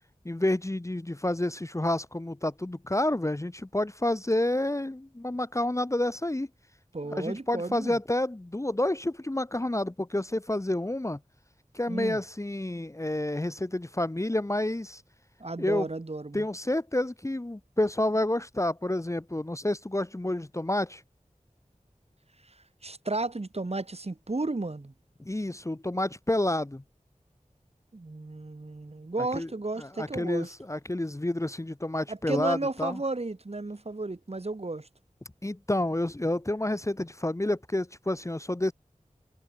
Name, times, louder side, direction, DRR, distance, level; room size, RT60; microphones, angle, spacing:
voice 1, 0.2-6.5 7.1-11.2 11.7-15.0 15.6-15.9 16.3-21.0 25.2-26.8 29.3-29.5 29.8-33.0 35.4-38.7, left 1 dB, 20° left, 0.8 m, -29 dB
voice 2, 6.9-8.0 11.9-12.2 15.4-16.5 22.8-24.9 27.9-30.5 32.1-34.9, right 2 dB, 50° right, 1.5 m, -33 dB
wide cardioid pair, 50°, 13 cm